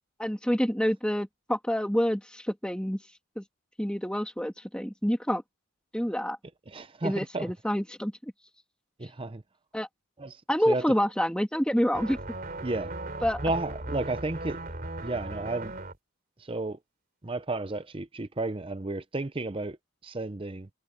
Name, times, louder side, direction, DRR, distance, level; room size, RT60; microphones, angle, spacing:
voice 1, 0.2-3.0 3.4-3.5 3.8-5.4 5.9-6.4 7.0-8.3 9.7-9.9 10.5-12.2 13.2-13.4, equal, 5° left, 2.3 m, -27 dB
voice 2, 6.7-7.5 9.0-9.4 10.2-10.4 10.7-10.9 12.6-12.9 13.4-14.6 15.0-15.7 16.4-16.8 17.2-19.8 20.0-20.7, right 2 dB, 25° right, 0.6 m, -32 dB
stretch bass, 11.9-16.0, right 2 dB, 40° right, 3.0 m, -37 dB
head